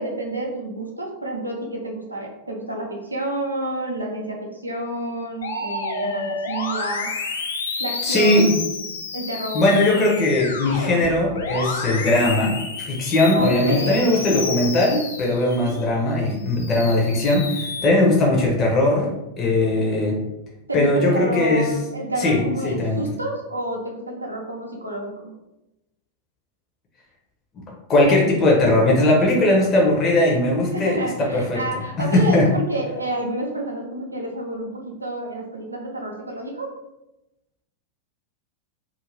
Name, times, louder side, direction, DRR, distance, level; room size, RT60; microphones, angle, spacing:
voice 1, 0.0-7.1 7.8-8.5 9.1-9.7 13.3-14.6 15.5-15.8 19.8-20.2 20.7-25.3 30.7-36.7, right 1 dB, 85° right, 0 dB, 0.6 m, -29 dB
Musical instrument, 5.4-15.8 16.3-17.9, left 3 dB, 65° left, 0.4 m, -30 dB
voice 2, 8.0-8.6 9.5-19.1 19.4-20.2 20.7-21.7 22.2-23.0 27.9-31.6 32.0-32.5, left 1 dB, 30° left, -2 dB, 0.7 m, -19 dB
2.5 x 2.4 x 3.2 m, 0.93 s
figure-of-eight pair, 90°, 0 cm